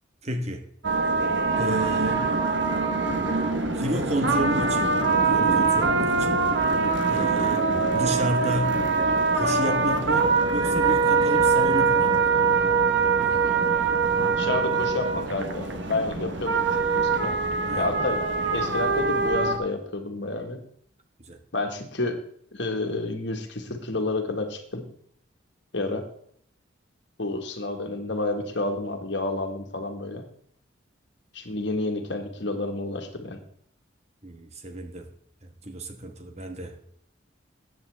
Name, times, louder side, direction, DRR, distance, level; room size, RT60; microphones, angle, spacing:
voice 1, 0.2-0.7 1.6-2.3 3.8-5.0 5.2-6.4 7.1-8.9 9.3-12.3 17.7-17.9 21.2-21.4 34.2-35.1 35.4-36.8, right 1 dB, 35° right, 6 dB, 1.3 m, -32 dB
sound 1, 0.8-19.6, right 4 dB, 65° right, 1.3 m, -23 dB
voice 2, 14.4-16.7 16.9-17.3 17.7-18.2 18.5-20.6 21.5-22.2 22.5-24.8 25.7-26.0 27.2-30.2 31.3-33.4, left 2 dB, 60° left, 5 dB, 1.7 m, -30 dB
14.0 x 9.1 x 3.5 m, 0.64 s
head